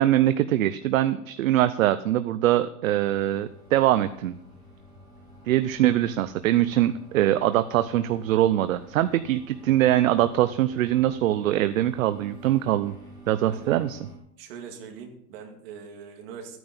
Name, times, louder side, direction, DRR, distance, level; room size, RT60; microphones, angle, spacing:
voice 1, 0.0-4.3 5.5-12.9 13.3-14.0, right 13 dB, 60° right, 12 dB, 0.6 m, -23 dB
sound 1, 3.0-14.2, right 1 dB, 5° left, 0.4 m, -48 dB
voice 2, 14.4-16.6, right 6 dB, 35° right, 3 dB, 2.4 m, -42 dB
13.5 x 9.3 x 5.3 m, 0.72 s
supercardioid pair, 165°, 47 cm